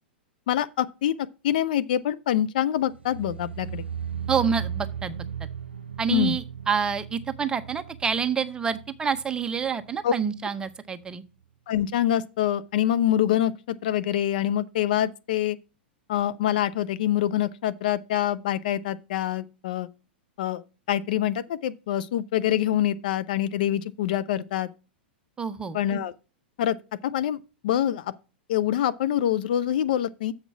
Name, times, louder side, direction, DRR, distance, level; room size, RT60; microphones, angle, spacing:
voice 1, 0.5-3.8 6.1-6.4 10.0-10.1 11.7-15.6 16.1-19.9 20.4-24.7 25.7-26.1 26.6-26.8 27.0-27.4 27.6-28.1 28.5-30.3, left 11 dB, 55° left, 0.5 m, -25 dB
sound 1, 2.9-10.0 10.2-10.7 11.0-11.1, right 8 dB, 85° right, 0.5 m, -36 dB
voice 2, 4.3-5.2 6.0-11.2 25.4-25.8, right 6 dB, 15° right, 0.7 m, -27 dB
7.2 x 5.3 x 5.8 m
figure-of-eight pair, 100°, 6 cm